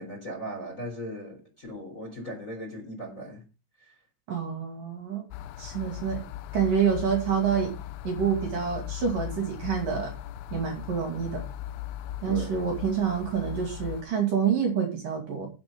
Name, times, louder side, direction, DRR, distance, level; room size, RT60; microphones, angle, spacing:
voice 1, 0.0-3.4 3.8-4.0 12.2-12.6, equal, 20° left, 3.3 m, -38 dB
voice 2, 4.3-5.3 5.6-6.2 6.5-7.7 8.0-10.1 10.5-11.4 12.2-15.5, right 7 dB, 50° right, 3.6 m, -27 dB
sound 1, 5.3-14.0, left 13 dB, 80° left, 3.1 m, -38 dB
16.0 x 7.8 x 3.8 m
omnidirectional pair, 5.6 m